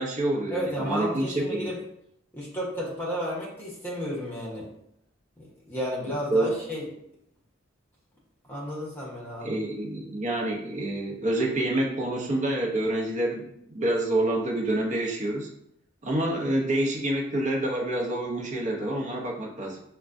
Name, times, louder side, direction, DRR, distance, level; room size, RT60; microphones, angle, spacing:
voice 1, 0.0-1.7 6.3-6.5 9.4-15.5 16.0-19.8, right 1 dB, 40° right, 0 dB, 0.7 m, -27 dB
voice 2, 0.5-1.8 2.3-4.7 5.4-6.9 8.5-9.6, equal, 10° left, -4 dB, 1.0 m, -32 dB
5.7 x 2.2 x 2.5 m, 0.75 s
head